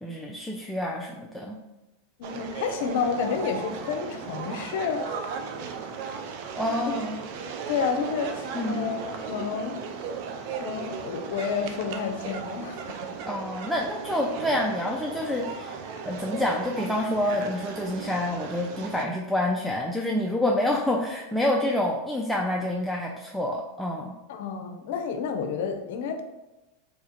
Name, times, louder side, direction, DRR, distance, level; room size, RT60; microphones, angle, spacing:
voice 1, 0.0-1.6 6.5-7.2 8.5-8.9 13.2-15.8 16.0-24.2, left 1 dB, ahead, -2 dB, 0.4 m, -28 dB
voice 2, 2.2-5.3 6.9-7.0 7.7-9.8 10.6-12.9 24.3-26.2, left 6 dB, 70° left, 6 dB, 0.5 m, -30 dB
sound 1, 2.2-19.1, right 5 dB, 60° right, 0.4 m, -36 dB
2.9 x 2.4 x 4.2 m, 1.0 s
hypercardioid pair, 110°, 0 cm